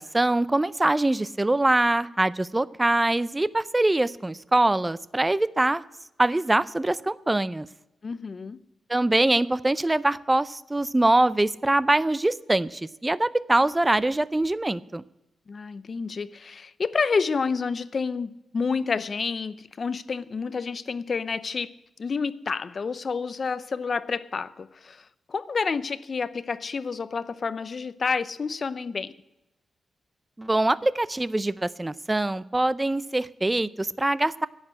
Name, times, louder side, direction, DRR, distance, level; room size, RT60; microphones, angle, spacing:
voice 1, 0.0-5.8 6.2-7.7 8.9-15.0 30.4-34.5, right 2 dB, 15° right, 0.5 m, -23 dB
voice 2, 8.0-8.6 15.5-21.7 22.0-29.1, left 5 dB, 45° left, 0.6 m, -29 dB
11.0 x 8.3 x 9.9 m
wide cardioid pair, 120°, 0 cm